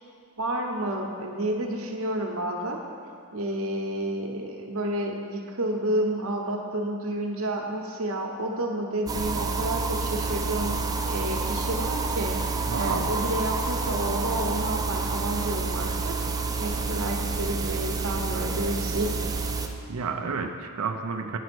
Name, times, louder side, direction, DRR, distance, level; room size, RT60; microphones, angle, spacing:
voice 1, 0.4-2.8 3.3-10.8 11.1-12.4 12.8-16.2 16.6-19.2, right 1 dB, 70° right, 1 dB, 1.0 m, -30 dB
sound 1, 9.1-19.7, right 4 dB, 15° right, 0.5 m, -29 dB
voice 2, 12.7-13.1 19.9-21.4, right 5 dB, 85° right, 6 dB, 0.5 m, -30 dB
9.2 x 5.0 x 6.1 m, 2.3 s
head